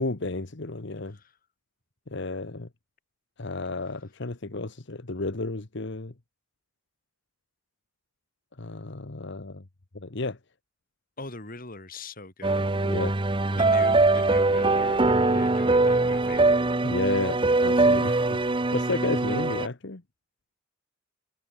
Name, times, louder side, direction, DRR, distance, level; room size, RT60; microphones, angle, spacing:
voice 1, 0.0-1.2 2.1-2.7 3.4-6.1 8.6-9.6 9.9-10.4 12.8-13.1 16.8-18.4 18.7-20.0, left 3 dB, 60° left, 1.3 m, -32 dB
voice 2, 11.2-12.6 13.6-16.5, left 2 dB, 45° left, 6.6 m, -41 dB
sound 1, 12.4-19.7, right 2 dB, 25° right, 0.9 m, -22 dB
head